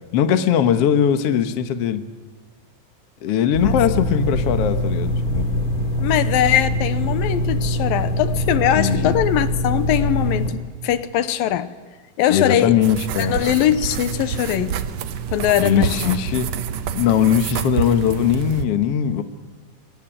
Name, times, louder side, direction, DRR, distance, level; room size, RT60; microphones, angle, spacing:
voice 1, 0.1-2.0 3.2-5.5 8.7-9.2 12.3-13.4 15.6-16.5 16.9-19.2, left 8 dB, 60° left, 9 dB, 1.7 m, -20 dB
sound 1, 3.5-10.5, left 1 dB, 25° left, 3.3 m, -23 dB
voice 2, 6.0-11.7 12.2-12.7 13.2-14.8 15.3-16.1, left 11 dB, 80° left, 13 dB, 2.6 m, -21 dB
sound 2, 12.8-18.7, right 7 dB, 70° right, 1.6 m, -27 dB
23.5 x 19.0 x 9.1 m, 1.3 s
omnidirectional pair, 4.2 m